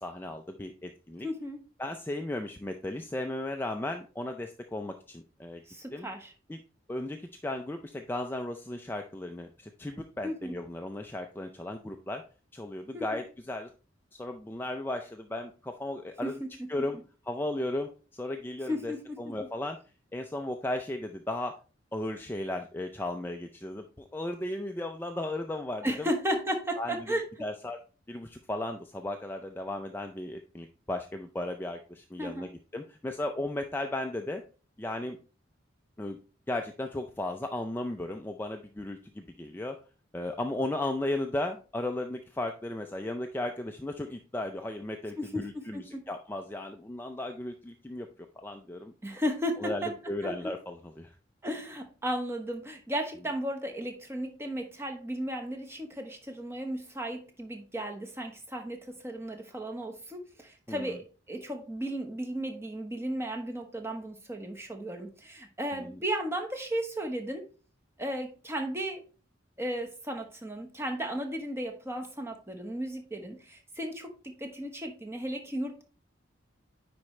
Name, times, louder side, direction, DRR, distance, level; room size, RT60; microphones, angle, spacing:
voice 1, 0.0-1.3 1.8-5.6 5.9-6.1 6.5-6.6 6.9-7.2 7.4-12.2 12.5-13.7 14.1-16.3 16.7-17.0 17.3-19.8 20.1-21.6 21.9-23.8 24.1-26.1 26.8-27.0 27.4-27.8 28.1-34.4 34.8-35.2 36.0-36.2 36.5-39.8 40.1-48.1 48.4-48.9 49.6-51.2 60.7-60.9 65.7-66.0, left 1 dB, 10° left, 4 dB, 0.4 m, -35 dB
voice 2, 1.2-1.6 5.7-6.3 10.2-10.6 12.9-13.2 16.2-16.7 18.7-19.3 25.8-27.2 32.2-32.5 45.2-46.1 49.0-50.0 50.2-50.5 51.4-67.5 68.0-69.0 69.6-75.8, equal, 15° right, 3 dB, 1.0 m, -35 dB
9.6 x 4.3 x 3.1 m, 0.36 s
head